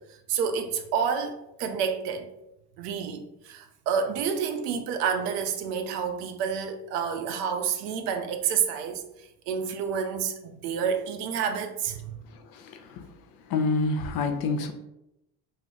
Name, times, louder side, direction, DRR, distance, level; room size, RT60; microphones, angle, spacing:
voice 1, 0.3-2.3 2.8-12.2, right 7 dB, 85° right, 0.6 m, -29 dB
voice 2, 12.3-13.1 13.5-14.7, left 3 dB, 55° left, 0.6 m, -28 dB
2.4 x 2.0 x 3.8 m
supercardioid pair, 80°, 46 cm